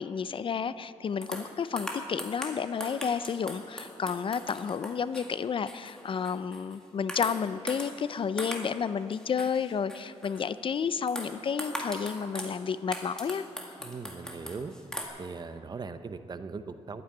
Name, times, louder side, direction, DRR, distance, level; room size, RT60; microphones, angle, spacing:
voice 1, 0.0-13.5, left 6 dB, 45° left, 15 dB, 0.4 m, -31 dB
sound 1, 1.2-6.8 7.1-8.8 9.1-10.5 11.1-12.6 12.9-15.1, equal, 5° left, 1.9 m, -40 dB
voice 2, 13.8-14.7 15.2-17.0, right 4 dB, 35° right, 11 dB, 0.7 m, -39 dB
12.0 x 9.4 x 9.5 m, 2.7 s
cardioid pair, 115°, 12 cm